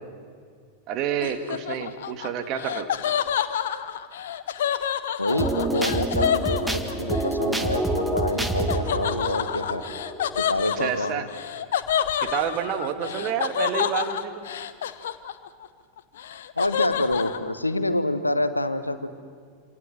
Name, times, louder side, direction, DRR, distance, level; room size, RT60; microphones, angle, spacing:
voice 1, 0.9-2.9 10.8-11.3 12.2-14.5, right 8 dB, 40° right, 8 dB, 2.4 m, -29 dB
Laughter, 1.2-7.3 8.7-15.7 16.0-17.4, left 9 dB, 60° left, 1.1 m, -28 dB
voice 2, 5.2-9.8 10.4-11.3 13.0-13.1 16.6-19.1, left 1 dB, 85° left, 11 dB, 1.4 m, -27 dB
sound 1, 5.3-10.8, right 2 dB, 5° right, 1.9 m, -28 dB
27.5 x 27.0 x 7.8 m, 2.1 s
figure-of-eight pair, 90°, 0 cm